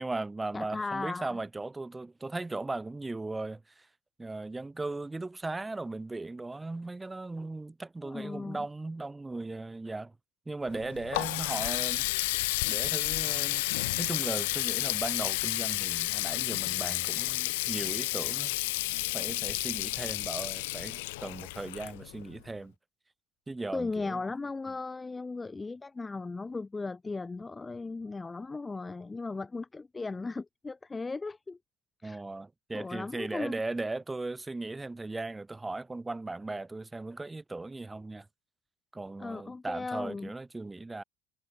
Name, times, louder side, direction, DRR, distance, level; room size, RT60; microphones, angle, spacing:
voice 1, 0.0-3.9 4.2-10.1 10.4-12.1 12.7-18.5 19.1-22.7 23.5-24.2 32.0-38.3 38.9-41.0, right 2 dB, 5° right, 1.5 m, -37 dB
voice 2, 0.5-1.4 8.0-8.7 23.7-31.6 32.0-32.2 32.7-33.6 39.2-40.3, left 3 dB, 10° left, 0.3 m, -37 dB
Water tap faucet, 10.7-22.4, left 22 dB, 80° left, 0.4 m, -31 dB
cardioid pair, 170°, 0 cm